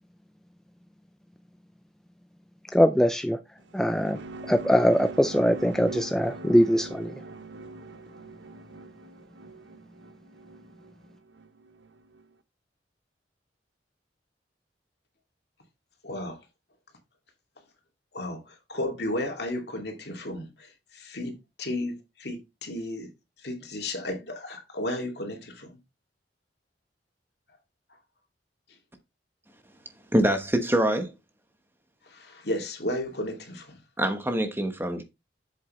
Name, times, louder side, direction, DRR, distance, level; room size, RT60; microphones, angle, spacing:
voice 1, 2.7-3.4 3.7-4.2 4.5-7.1, equal, 5° left, 0.4 m, -22 dB
sound 1, 3.6-12.2, right 2 dB, 90° right, 0.9 m, -43 dB
voice 2, 16.0-16.4 18.1-21.3 21.6-23.1 23.4-25.7 32.1-33.8, left 1 dB, 65° left, 2.5 m, -33 dB
voice 3, 30.1-31.1 34.0-35.0, right 1 dB, 15° right, 1.1 m, -24 dB
7.9 x 7.6 x 3.2 m
head